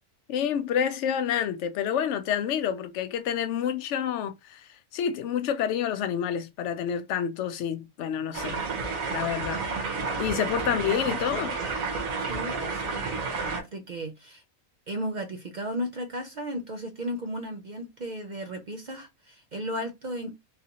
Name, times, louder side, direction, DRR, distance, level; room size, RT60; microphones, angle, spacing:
voice 1, 0.3-8.6 9.1-9.6 10.2-11.6, left 9 dB, 65° left, 0.8 m, -28 dB
sound 1, 8.3-13.6, right 4 dB, 75° right, 1.4 m, -31 dB
voice 2, 12.3-14.4 14.9-20.4, equal, 60° right, 0.4 m, -35 dB
3.9 x 2.6 x 2.8 m
omnidirectional pair, 1.4 m